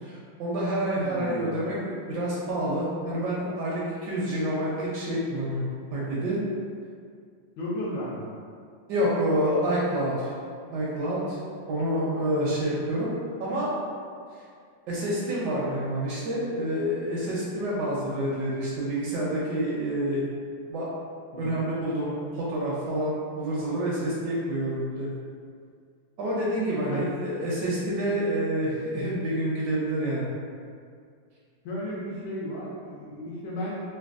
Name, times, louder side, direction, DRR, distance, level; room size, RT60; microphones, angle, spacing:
voice 1, 0.0-6.4 8.9-10.3 10.7-11.4 11.7-13.1 13.4-13.7 14.9-20.2 20.7-20.9 21.4-25.1 26.2-30.3, right 1 dB, 75° right, -6 dB, 1.1 m, -28 dB
voice 2, 1.0-1.6 7.6-8.3 21.3-21.7 26.8-27.1 31.6-33.8, equal, 70° left, -6 dB, 1.1 m, -34 dB
3.3 x 2.1 x 2.4 m, 2.2 s
omnidirectional pair, 2.1 m